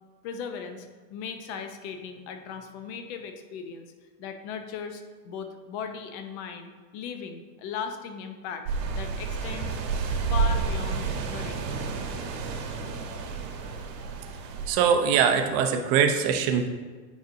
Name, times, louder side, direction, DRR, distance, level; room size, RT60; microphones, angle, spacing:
voice 1, 0.2-3.9 4.2-8.6 9.0-9.8 10.3-11.7, left 6 dB, 40° left, 6 dB, 0.7 m, -37 dB
sound 1, 8.7-14.7, right 4 dB, 75° right, 1.4 m, -30 dB
voice 2, 14.6-16.7, right 7 dB, 35° right, 5 dB, 0.6 m, -22 dB
9.3 x 5.3 x 2.6 m, 1.4 s
supercardioid pair, 150°, 50 cm